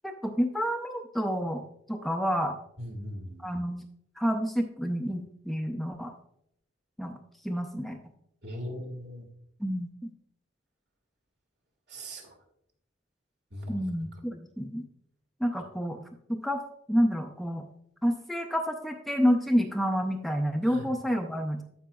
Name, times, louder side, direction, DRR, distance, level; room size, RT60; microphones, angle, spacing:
voice 1, 0.0-1.6 1.9-2.5 3.4-3.8 4.2-6.1 7.0-7.1 7.4-8.0 9.6-10.1 13.7-14.8 15.4-16.0 16.3-16.6 16.9-17.6 18.0-21.6, equal, ahead, 4 dB, 0.5 m, -29 dB
voice 2, 2.8-3.4 8.4-9.2 11.9-12.2 13.5-13.8 20.6-20.9, equal, 60° right, 2 dB, 2.0 m, -39 dB
15.0 x 5.0 x 2.3 m, 0.72 s
head